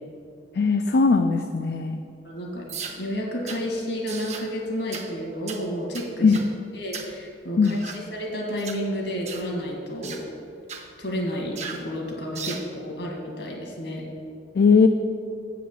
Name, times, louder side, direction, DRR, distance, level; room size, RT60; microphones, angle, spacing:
voice 1, 0.5-2.0 6.2-6.4 7.6-7.8 14.5-14.9, left 4 dB, 65° left, 6 dB, 0.4 m, -19 dB
voice 2, 2.2-2.6 2.9-6.3 6.7-10.2 11.0-14.1, equal, 80° left, -1 dB, 2.0 m, -31 dB
sound 1, 2.7-3.0 3.5-3.6 4.1-4.5 4.9-5.1 5.5-5.6 5.9-6.5 6.9-7.1 7.6-8.0 8.6-8.8 9.3-9.5 10.0-10.2 10.7-10.9 11.6-11.8 12.3-12.7, right 6 dB, 40° right, 0.7 m, -36 dB
7.9 x 5.0 x 7.4 m, 2.4 s
head